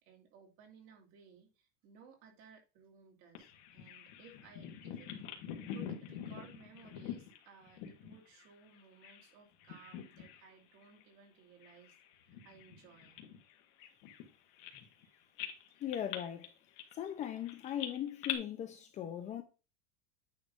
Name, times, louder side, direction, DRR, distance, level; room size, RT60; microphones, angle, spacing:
voice 1, 0.0-5.1 5.7-13.2 15.0-15.3, right 5 dB, 40° right, 2.5 m, -59 dB
Bird vocalization bird call bird song, 3.3-9.3 9.6-10.5 10.8-11.0 11.6-15.0 15.4-18.3, left 10 dB, 55° left, 1.9 m, -45 dB
voice 2, 15.8-16.5 16.9-19.4, left 10 dB, 20° left, 0.6 m, -39 dB
9.5 x 3.2 x 5.1 m
supercardioid pair, 165°, 32 cm